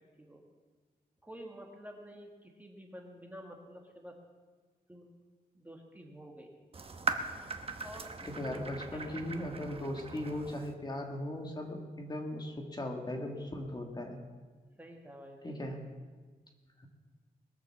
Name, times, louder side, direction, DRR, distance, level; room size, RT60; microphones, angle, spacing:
voice 1, 1.2-4.2 4.9-5.1 5.5-6.5 7.8-8.1 8.5-9.2 14.8-15.8, equal, 10° right, 1 dB, 1.4 m, -50 dB
sound 1, 6.7-10.7, right 4 dB, 40° right, 1.0 m, -39 dB
voice 2, 8.2-14.2 15.4-15.8 16.8-16.9, left 1 dB, 25° left, 2 dB, 1.7 m, -38 dB
20.5 x 7.0 x 7.2 m, 1.4 s
wide cardioid pair, 175°, 15 cm